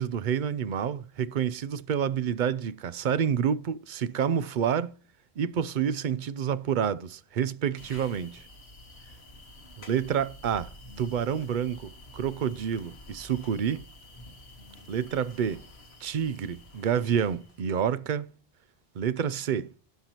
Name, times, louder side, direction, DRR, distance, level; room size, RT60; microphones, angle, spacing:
voice 1, 0.0-4.9 5.4-8.4 9.9-10.7 11.0-13.8 14.9-15.6 16.0-18.3 18.9-19.7, right 8 dB, 55° right, 0.7 m, -28 dB
sound 1, 7.8-17.7, left 1 dB, 80° left, 1.9 m, -49 dB
15.5 x 5.8 x 2.9 m
omnidirectional pair, 1.1 m